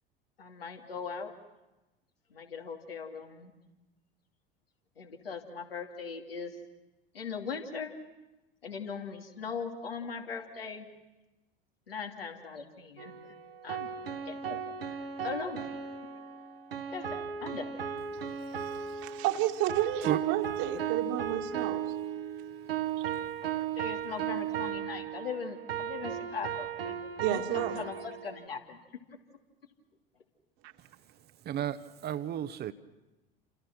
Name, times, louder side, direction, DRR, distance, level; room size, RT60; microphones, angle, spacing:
voice 1, 0.4-1.3 2.3-3.5 5.0-6.5 7.1-7.9 8.6-10.9 11.9-13.2 13.6-13.9 14.3-14.6 15.2-15.7 16.9-18.0 23.5-27.0 27.3-28.8, left 5 dB, 75° left, 2 dB, 2.8 m, -40 dB
sound 1, 13.0-28.5, right 8 dB, 75° right, 1.7 m, -36 dB
voice 2, 18.6-21.8 23.0-23.1 27.2-27.9 30.6-30.7, right 12 dB, 50° right, 6 dB, 2.1 m, -31 dB
voice 3, 31.5-31.8 32.0-32.7, right 10 dB, 35° right, 12 dB, 1.1 m, -32 dB
29.0 x 27.5 x 6.2 m, 1.0 s
figure-of-eight pair, 70°, 29 cm